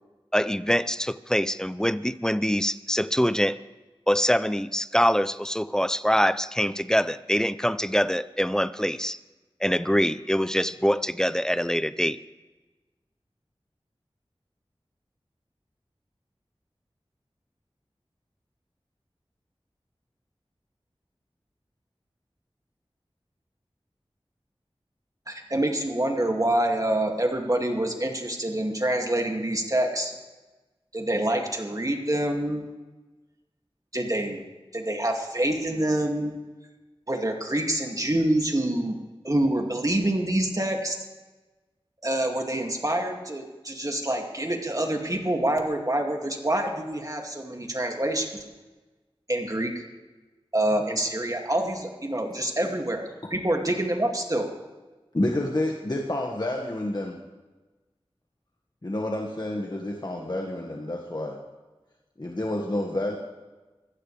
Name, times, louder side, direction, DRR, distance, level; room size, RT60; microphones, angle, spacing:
voice 1, 0.3-3.6 4.1-9.2 9.6-12.2, equal, 5° left, 15 dB, 0.5 m, -24 dB
voice 2, 25.3-30.1 30.9-32.7 33.9-34.4 34.7-36.4 37.1-39.0 39.2-41.0 42.0-48.3 49.3-49.8 50.5-54.5, right 1 dB, 35° right, 2 dB, 2.5 m, -26 dB
voice 3, 55.1-57.2 58.8-61.4 62.2-63.2, left 1 dB, 45° left, 0 dB, 1.7 m, -29 dB
24.5 x 15.0 x 3.4 m, 1.2 s
wide cardioid pair, 45°, 10 cm